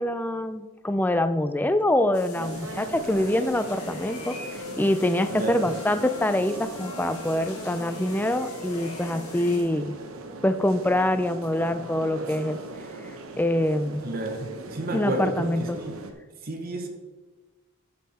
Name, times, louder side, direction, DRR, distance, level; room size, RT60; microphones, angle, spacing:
voice 1, 0.0-4.4 4.8-10.0 10.4-12.6 13.4-14.0 14.9-15.8, left 1 dB, 10° left, 10 dB, 0.4 m, -25 dB
sound 1, 2.1-9.6, left 5 dB, 90° left, 1.9 m, -46 dB
sound 2, 2.3-16.1, right 2 dB, 70° right, 1.2 m, -39 dB
sound 3, 3.6-10.1, left 2 dB, 65° left, 1.6 m, -43 dB
voice 2, 5.3-5.7 14.0-16.0 16.4-16.9, right 2 dB, 40° right, 4 dB, 1.0 m, -31 dB
12.5 x 5.7 x 4.2 m, 1.3 s
head